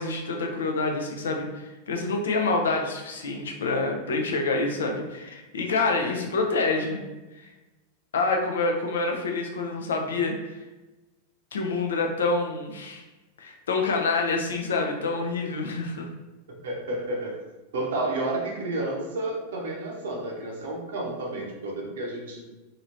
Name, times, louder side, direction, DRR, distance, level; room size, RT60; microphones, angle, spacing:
voice 1, 0.0-7.0 8.1-10.3 11.5-13.0 13.4-16.1, left 3 dB, 65° left, 2 dB, 0.5 m, -27 dB
voice 2, 16.6-17.4 17.7-22.6, right 2 dB, 60° right, -1 dB, 0.7 m, -31 dB
2.9 x 2.8 x 2.6 m, 1.1 s
figure-of-eight pair, 90°, 0 cm